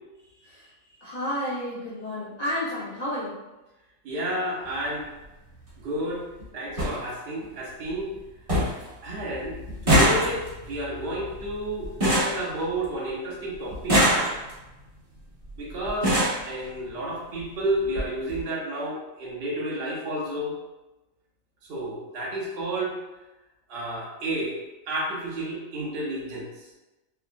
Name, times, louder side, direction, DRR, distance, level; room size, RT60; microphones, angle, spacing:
voice 1, 0.4-3.3, left 1 dB, 40° left, -9 dB, 0.7 m, -31 dB
voice 2, 4.0-5.1 5.8-6.2 6.5-8.1 9.0-9.6 9.8-14.2 15.6-20.6 21.7-22.9 23.7-24.5 24.9-26.7, right 1 dB, 55° right, -5 dB, 0.9 m, -31 dB
sound 1, 4.6-4.8 6.1-6.2 6.4-6.5 6.8-7.0 7.4-7.9 8.2-8.3 8.5-8.9 9.1-13.1 13.7-14.7 15.5-15.6 15.9-16.4 17.4-17.5 17.8-18.0 18.3-18.4, equal, 25° right, 1.0 m, -24 dB
3.4 x 2.0 x 2.5 m, 1.1 s
omnidirectional pair, 1.4 m